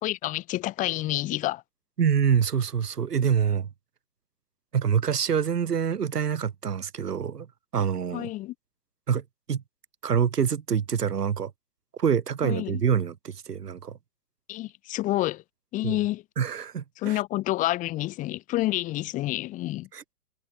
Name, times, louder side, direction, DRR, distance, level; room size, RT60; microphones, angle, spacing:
voice 1, 0.0-1.6 8.1-8.5 12.4-12.8 14.5-15.4 15.7-16.2 17.0-19.9, left 16 dB, 15° left, 2.9 m, -28 dB
voice 2, 2.0-3.7 4.7-7.5 7.7-8.3 9.1-9.6 10.0-11.5 12.0-14.0 15.8-16.0 16.4-17.2 19.9-20.0, right 7 dB, 80° right, 4.0 m, -26 dB
hypercardioid pair, 165°, 47 cm